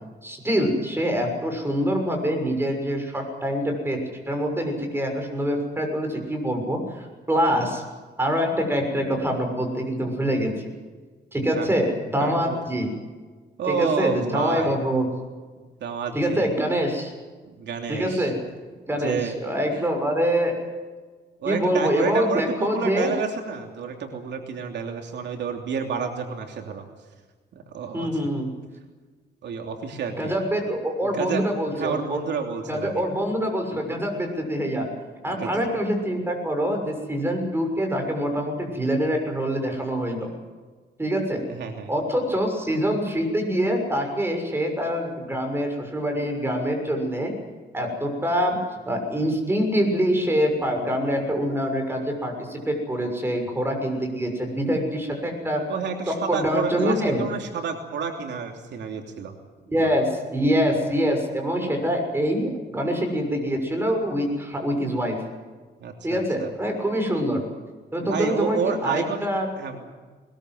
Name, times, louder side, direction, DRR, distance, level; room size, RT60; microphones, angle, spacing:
voice 1, 0.2-4.0 4.3-7.8 8.2-10.5 11.3-12.9 13.7-15.1 16.1-17.1 17.9-18.4 18.9-20.6 21.4-23.1 27.9-28.5 30.2-32.2 32.7-34.9 35.2-40.3 41.0-41.4 41.9-47.3 47.7-48.6 48.8-55.6 56.1-57.2 59.7-65.2 66.0-67.4 67.9-69.5, equal, 15° right, 3 dB, 6.5 m, -25 dB
voice 2, 12.2-12.6 13.6-14.8 15.8-16.5 17.4-18.3 19.0-19.4 19.7-19.9 21.4-26.9 27.7-28.1 29.4-30.3 31.0-31.5 31.7-32.9 35.2-35.5 41.5-41.9 55.7-59.3 59.8-60.0 65.8-66.5 68.0-69.3 69.6-69.9, right 6 dB, 75° right, 3 dB, 3.1 m, -29 dB
21.5 x 21.0 x 7.9 m, 1.4 s
cardioid pair, 125°, 18 cm